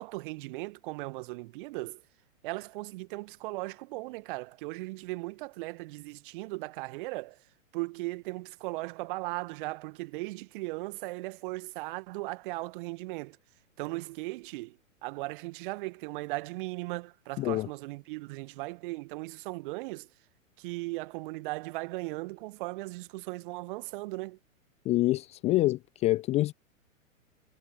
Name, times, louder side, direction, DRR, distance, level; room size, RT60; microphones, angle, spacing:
voice 1, 0.0-2.0 2.4-7.4 7.7-13.4 13.8-20.1 20.6-24.4, right 22 dB, 40° right, 1.6 m, -37 dB
voice 2, 17.4-17.7 24.9-26.5, left 17 dB, 15° left, 0.6 m, -26 dB
figure-of-eight pair, 110°, 40 cm